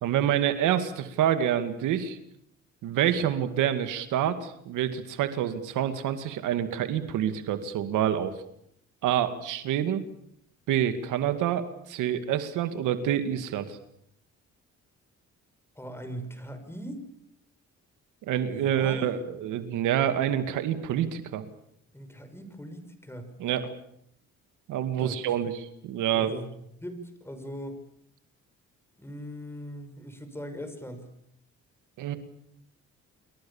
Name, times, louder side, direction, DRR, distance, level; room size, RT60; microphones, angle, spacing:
voice 1, 0.0-2.2 2.8-8.3 9.0-10.0 10.7-13.8 18.2-21.4 23.4-23.7 24.7-26.4 32.0-32.2, right 10 dB, 90° right, 10 dB, 2.2 m, -27 dB
voice 2, 15.7-17.0 18.5-19.3 21.9-23.3 24.9-25.2 26.1-27.8 29.0-31.1, equal, 10° left, 8 dB, 6.2 m, -40 dB
28.5 x 23.0 x 7.2 m, 0.73 s
cardioid pair, 90°, 30 cm